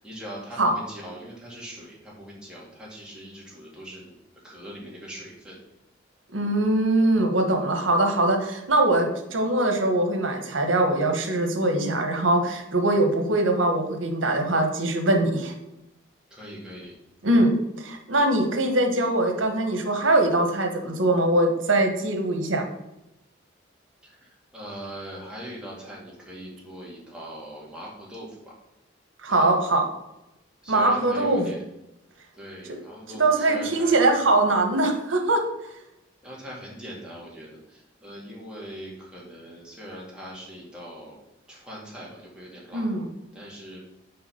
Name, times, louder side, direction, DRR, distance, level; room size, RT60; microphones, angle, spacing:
voice 1, 0.0-4.1 4.4-5.6 16.3-16.9 24.0-28.5 29.3-29.5 30.6-31.6 32.3-34.0 36.2-41.2 41.5-42.9 43.3-43.8, equal, 5° right, -5 dB, 2.1 m, -41 dB
voice 2, 6.3-15.5 17.2-17.5 17.8-22.6 29.2-29.8 30.7-31.5 33.1-35.4 42.7-43.0, right 2 dB, 85° right, 5 dB, 1.2 m, -22 dB
5.6 x 5.0 x 5.8 m, 0.90 s
head